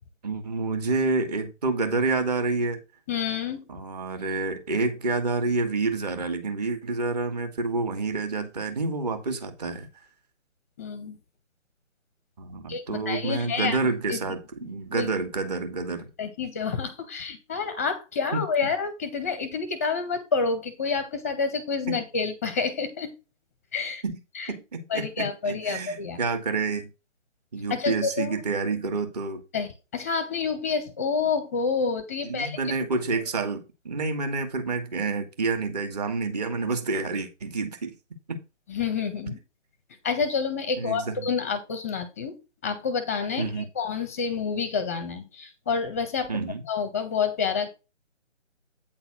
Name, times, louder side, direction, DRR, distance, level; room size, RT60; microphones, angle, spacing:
voice 1, 0.2-2.8 3.7-9.9 12.4-16.1 18.3-18.4 21.9-22.0 24.0-24.2 24.5-26.9 27.5-29.4 32.3-37.9 38.3-38.4 40.8-41.3 43.4-43.6 46.3-46.6, right 3 dB, 35° right, 1.7 m, -28 dB
voice 2, 3.1-3.6 10.8-11.2 12.7-13.8 14.1-14.2 14.6-14.7 15.0-15.1 16.2-23.1 23.7-24.0 24.3-24.5 24.9-26.2 27.7-28.3 29.5-32.6 38.7-39.4 40.0-42.4 42.6-46.3 46.7-47.7, left 5 dB, 15° left, 0.7 m, -28 dB
8.8 x 4.0 x 5.9 m
figure-of-eight pair, 145°, 36 cm